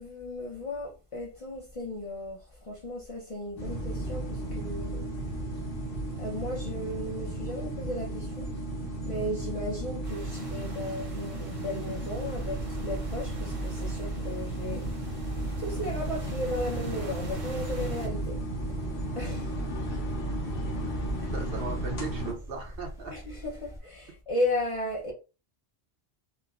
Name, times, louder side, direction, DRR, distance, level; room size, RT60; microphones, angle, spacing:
voice 1, 0.0-5.1 6.2-8.5 9.1-14.9 15.6-18.4 19.2-19.5 21.2-21.3 23.1-25.1, left 1 dB, 40° left, 0.6 m, -35 dB
sound 1, 3.6-22.3, right 1 dB, 65° left, 1.1 m, -34 dB
sound 2, 10.0-18.1, right 2 dB, 35° right, 0.7 m, -47 dB
sound 3, 12.1-23.8, equal, 5° right, 0.7 m, -42 dB
voice 2, 20.4-20.8 21.3-23.1, right 4 dB, 65° right, 1.0 m, -38 dB
4.5 x 2.1 x 2.4 m
omnidirectional pair, 1.0 m